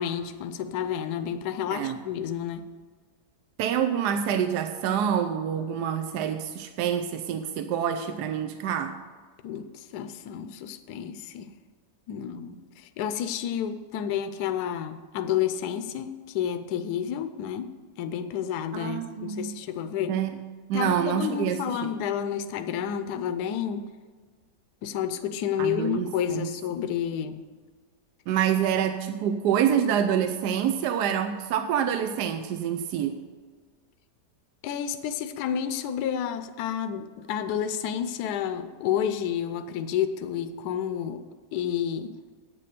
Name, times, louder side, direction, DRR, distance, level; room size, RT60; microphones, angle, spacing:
voice 1, 0.0-2.7 9.4-11.5 12.1-17.7 18.0-20.1 20.7-23.9 24.8-27.4 34.6-41.2 41.5-42.1, left 9 dB, 70° left, 9 dB, 1.1 m, -30 dB
voice 2, 3.6-9.0 18.7-19.5 20.1-20.4 20.7-21.9 25.6-26.5 28.3-33.2, right 9 dB, 80° right, 8 dB, 1.1 m, -27 dB
9.0 x 7.6 x 6.6 m, 1.5 s
omnidirectional pair, 1.8 m